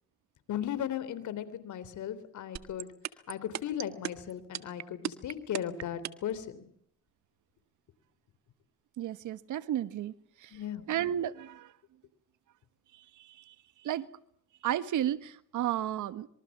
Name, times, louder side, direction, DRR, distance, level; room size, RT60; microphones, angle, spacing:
voice 1, 0.5-2.9 3.3-6.7 10.5-10.8, left 10 dB, 75° left, 14 dB, 3.6 m, -36 dB
sound 1, 2.6-6.3, right 10 dB, 65° right, 1.7 m, -35 dB
voice 2, 9.0-10.1 10.4-10.5 10.9-11.7 13.5-13.6 13.8-14.1 14.6-16.3, right 12 dB, 80° right, 14 dB, 1.5 m, -32 dB
26.0 x 23.5 x 7.4 m, 0.66 s
cardioid pair, 90°, 30 cm